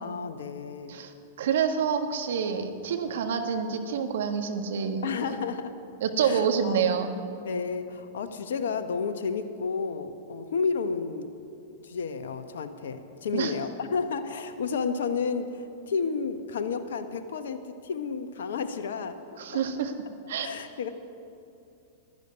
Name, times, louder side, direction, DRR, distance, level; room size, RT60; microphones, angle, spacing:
voice 1, 0.0-1.0 5.0-5.7 6.2-6.8 7.4-11.3 11.8-19.2 19.5-19.9 20.4-20.9, left 5 dB, 70° left, 8 dB, 0.9 m, -31 dB
voice 2, 0.9-5.3 6.0-7.1 13.3-13.5 19.4-19.9 20.3-20.5, right 7 dB, 65° right, 6 dB, 1.5 m, -27 dB
12.0 x 11.0 x 9.4 m, 2.7 s
hypercardioid pair, 100°, 0 cm